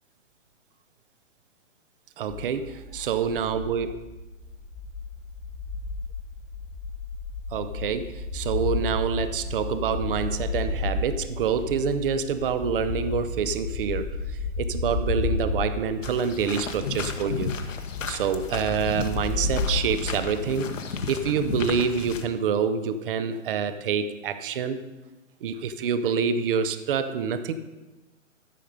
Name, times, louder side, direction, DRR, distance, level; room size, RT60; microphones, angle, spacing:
voice 1, 2.2-3.9 7.5-17.5 18.1-20.7 21.1-24.8 25.4-27.5, right 6 dB, 45° right, 12 dB, 0.7 m, -27 dB
sound 1, 2.3-20.5, left 4 dB, 20° left, 1.2 m, -32 dB
sound 2, 16.0-22.2, left 5 dB, 75° left, 1.3 m, -34 dB
14.0 x 5.3 x 5.2 m, 1.1 s
hypercardioid pair, 145°, 38 cm